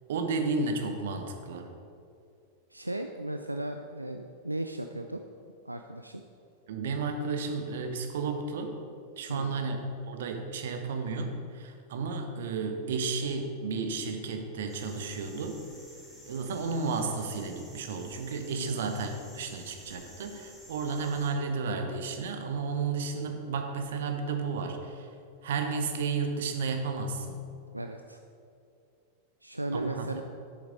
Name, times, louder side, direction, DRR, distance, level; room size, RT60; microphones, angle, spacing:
voice 1, 0.1-1.7 6.7-8.8 9.2-9.8 10.1-15.6 16.3-25.1 25.4-27.5 29.7-30.1, right 4 dB, 60° right, 5 dB, 1.0 m, -32 dB
voice 2, 2.7-5.2 5.6-6.2 9.3-9.7 18.6-18.9 27.7-28.2 29.4-30.2, right 1 dB, 85° right, 6 dB, 0.3 m, -36 dB
sound 1, 14.7-21.3, equal, ahead, 2.1 m, -52 dB
8.2 x 6.9 x 5.1 m, 2.5 s
figure-of-eight pair, 90°, 0 cm